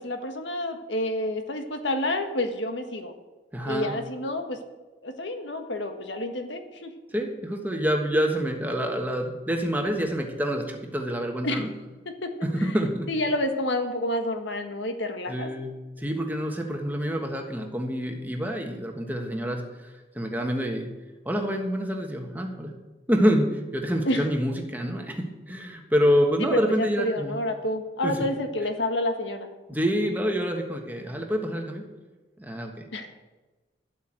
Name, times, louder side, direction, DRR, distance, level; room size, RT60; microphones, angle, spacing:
voice 1, 0.0-3.1 3.6-4.6 5.0-6.9 11.4-11.7 12.0-12.5 13.1-15.5 24.0-24.3 26.4-29.5 32.9-33.1, left 1 dB, 80° left, 6 dB, 1.5 m, -29 dB
voice 2, 3.5-3.9 7.1-11.7 12.4-13.1 15.3-20.9 21.2-22.7 23.1-27.4 28.0-28.1 29.7-31.9 32.4-32.9, equal, 10° right, 2 dB, 1.4 m, -27 dB
11.5 x 8.4 x 7.6 m, 1.2 s
head